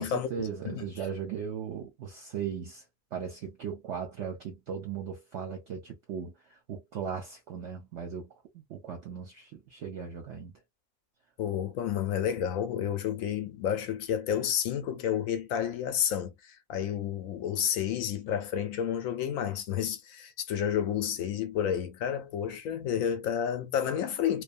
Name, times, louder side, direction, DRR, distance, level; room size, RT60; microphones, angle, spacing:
voice 1, 0.0-2.8 3.1-10.6, right 7 dB, 60° right, 0.8 m, -38 dB
voice 2, 11.4-24.4, left 9 dB, 70° left, 0.9 m, -30 dB
2.5 x 2.2 x 2.4 m
omnidirectional pair, 1.6 m